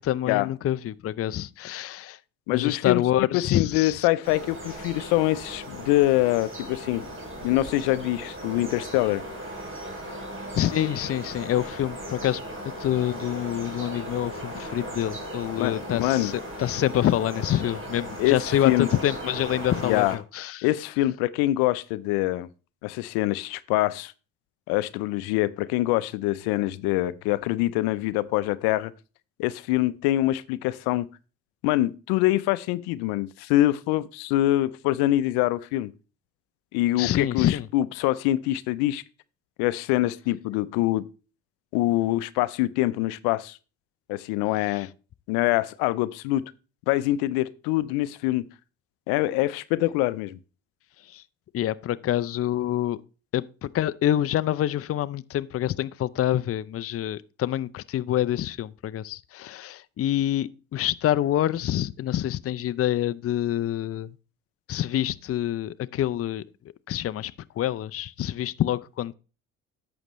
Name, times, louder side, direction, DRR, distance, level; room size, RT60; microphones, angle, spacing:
voice 1, 0.1-2.2 2.5-4.1 10.5-12.4 12.8-20.7 37.0-37.7 44.7-44.9 51.1-51.2 51.5-53.0 53.3-64.1 64.7-66.4 66.9-69.1, left 12 dB, 40° left, 0.5 m, -26 dB
voice 2, 2.5-3.0 3.3-7.1 7.4-9.2 15.6-16.3 18.2-18.9 19.8-20.2 20.6-22.5 22.8-24.1 24.7-28.9 29.4-31.1 31.6-35.9 36.7-39.0 39.6-41.1 41.7-43.6 44.1-44.9 45.3-46.5 46.9-48.5 49.1-50.4, left 16 dB, 85° left, 0.6 m, -24 dB
sound 1, 4.2-20.2, right 1 dB, 35° right, 3.3 m, -37 dB
11.0 x 7.8 x 3.0 m
supercardioid pair, 70°, 37 cm